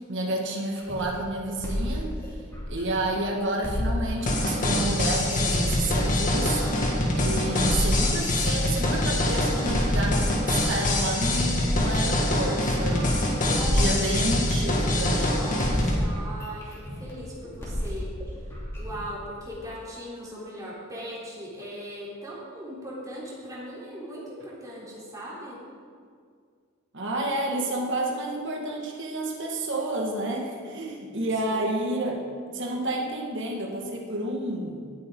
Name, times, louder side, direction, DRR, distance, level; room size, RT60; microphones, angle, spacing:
voice 1, 0.0-2.1 2.7-6.9 7.2-13.1 13.7-15.5 26.9-32.2 32.5-34.8, right 1 dB, 60° right, 0 dB, 1.7 m, -30 dB
doggy glitch, 0.8-3.2 3.6-7.2 7.6-11.2 11.6-15.3 15.6-19.7, equal, 15° left, 3.1 m, -32 dB
sound 1, 4.3-16.0, left 1 dB, 40° left, 1.9 m, -25 dB
voice 2, 12.8-14.0 15.1-16.7 17.0-18.1 18.8-25.6 31.5-31.9, equal, 15° right, -7 dB, 3.5 m, -39 dB
18.5 x 8.3 x 3.8 m, 2.1 s
head